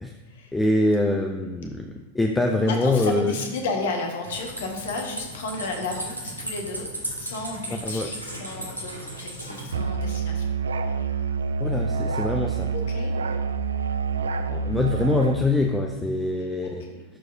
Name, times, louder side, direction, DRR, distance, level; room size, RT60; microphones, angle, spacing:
voice 1, 0.5-1.9 2.1-3.3 7.8-8.1 11.6-12.7 14.5-16.8, left 2 dB, 10° left, 3 dB, 0.5 m, -24 dB
voice 2, 2.6-6.9 7.2-10.5 12.7-13.1 16.6-17.0, left 3 dB, 60° left, 2 dB, 1.4 m, -32 dB
sound 1, 4.2-9.7, right 1 dB, 90° right, 1.4 m, -36 dB
Musical instrument, 9.7-15.4, right 5 dB, 70° right, 0.4 m, -27 dB
11.5 x 4.7 x 2.7 m, 1.3 s
figure-of-eight pair, 90°, 0 cm